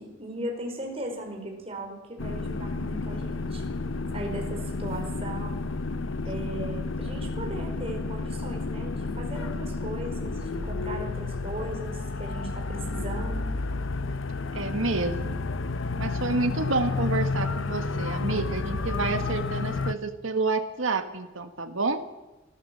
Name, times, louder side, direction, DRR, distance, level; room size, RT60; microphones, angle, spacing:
voice 1, 0.0-3.6 4.1-5.7 6.3-13.4, right 1 dB, 30° right, 2 dB, 5.0 m, -37 dB
sound 1, 2.2-19.9, left 3 dB, 75° left, 0.8 m, -31 dB
voice 2, 14.5-15.4 16.0-22.0, right 3 dB, 80° right, 7 dB, 1.5 m, -29 dB
24.0 x 14.5 x 7.8 m, 1.0 s
head